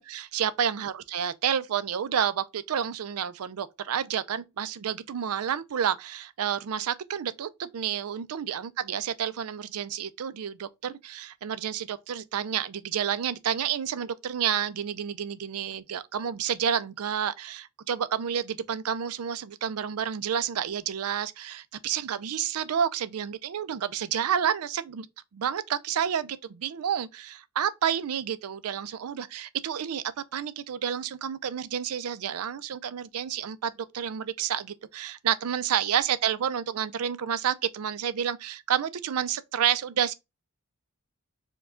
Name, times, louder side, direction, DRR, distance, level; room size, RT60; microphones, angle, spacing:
voice 1, 0.0-25.1 25.3-30.0 30.3-40.1, right 8 dB, 85° right, 0.4 m, -30 dB
4.6 x 2.3 x 3.6 m
head